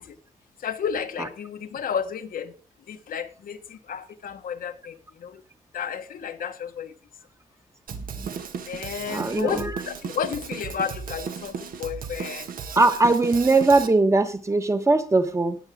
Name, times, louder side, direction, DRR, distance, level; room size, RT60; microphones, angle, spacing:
voice 1, 0.6-2.5 2.9-5.0 5.2-5.3 5.7-6.9 8.7-12.5, left 7 dB, 80° left, 1.3 m, -32 dB
Drum kit, 7.9-13.9, right 6 dB, 80° right, 1.6 m, -35 dB
voice 2, 9.1-9.8 12.8-15.6, right 3 dB, 20° right, 1.2 m, -20 dB
18.5 x 7.2 x 3.7 m
wide cardioid pair, 165°, 14 cm